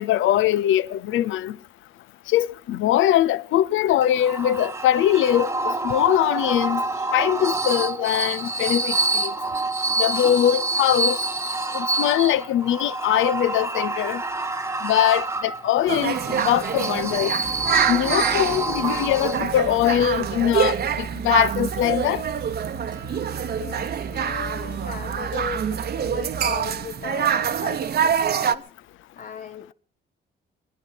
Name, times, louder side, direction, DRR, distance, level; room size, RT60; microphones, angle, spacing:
voice 1, 0.0-1.6 2.3-6.8 7.1-9.3 10.0-11.2 11.7-14.2 14.8-17.3 17.9-22.2, left 12 dB, 80° left, 0.7 m, -22 dB
sound 1, 4.0-19.7, right 2 dB, 15° right, 1.0 m, -27 dB
sound 2, 15.9-28.5, right 8 dB, 55° right, 1.0 m, -26 dB
sound 3, 17.4-26.9, right 5 dB, 80° right, 1.8 m, -38 dB
voice 2, 23.5-28.7 29.2-29.7, left 7 dB, 45° left, 1.0 m, -37 dB
20.0 x 11.0 x 5.7 m
cardioid pair, 90°, 20 cm